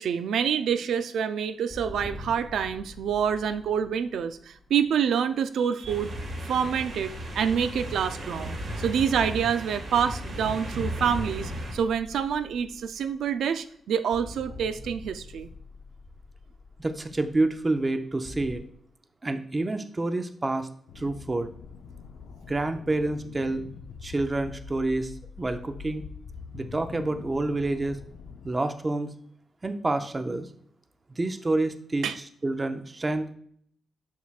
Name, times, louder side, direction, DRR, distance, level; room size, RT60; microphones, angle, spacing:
voice 1, 0.0-6.1 6.5-15.5 32.0-32.2, right 7 dB, 90° right, 11 dB, 0.3 m, -27 dB
sound 1, 1.7-5.3 5.8-9.6 10.0-13.6 14.1-18.6, left 2 dB, 10° left, 0.8 m, -45 dB
sound 2, 5.8-11.7, right 1 dB, 60° right, 1.7 m, -35 dB
voice 2, 16.8-18.6 19.2-20.7 21.0-21.5 22.5-23.6 24.0-25.1 25.4-26.0 26.5-28.0 28.4-29.1 29.6-30.5 31.2-33.3, right 2 dB, 20° right, 8 dB, 0.5 m, -28 dB
sound 3, 20.9-28.5, left 5 dB, 85° left, 0.5 m, -44 dB
7.2 x 5.9 x 2.3 m, 0.62 s
wide cardioid pair, 140°, 0 cm